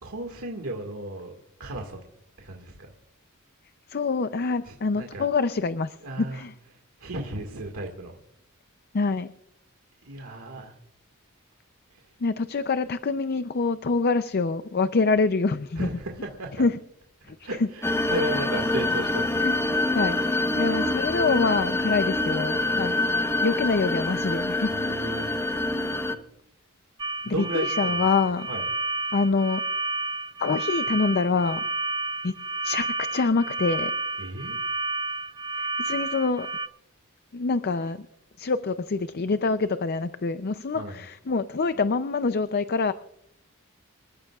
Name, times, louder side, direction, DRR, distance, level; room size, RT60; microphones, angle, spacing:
voice 1, 0.0-1.3 1.6-2.0 2.4-2.9 4.6-5.3 6.0-6.4 7.0-8.2 10.0-10.7 11.9-12.1 15.8-16.6 17.4-19.4 24.7-25.3 27.3-28.0 28.5-28.7 34.2-34.6 40.7-41.0, right 2 dB, 75° right, 1 dB, 1.9 m, -34 dB
voice 2, 3.9-6.5 8.9-9.3 12.2-15.9 16.6-16.8 17.3-17.7 19.4-19.5 19.9-23.0 23.4-24.7 27.3-28.5 29.1-29.6 30.4-31.6 32.2-32.3 32.6-33.9 35.6-36.5 37.3-38.1 38.4-42.9, left 4 dB, 45° left, 11 dB, 0.5 m, -26 dB
sound 1, 17.8-26.1, left 2 dB, 10° left, 1.0 m, -26 dB
sound 2, 27.0-36.7, right 3 dB, 20° right, 0.4 m, -30 dB
27.0 x 14.5 x 2.4 m, 0.76 s
head